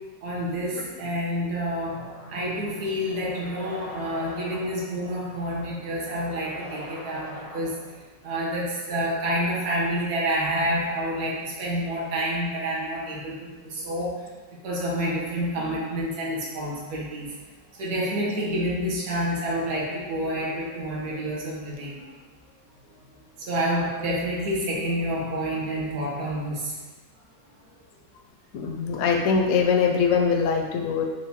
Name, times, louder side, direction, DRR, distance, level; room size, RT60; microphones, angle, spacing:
voice 1, 0.0-22.1 23.4-26.8, equal, 60° right, -5 dB, 1.3 m, -29 dB
sound 1, 2.0-8.0, right 1 dB, 80° right, 1.9 m, -42 dB
voice 2, 28.5-31.0, left 5 dB, 70° left, 2 dB, 0.9 m, -22 dB
4.5 x 2.1 x 4.1 m, 1.3 s
omnidirectional pair, 1.9 m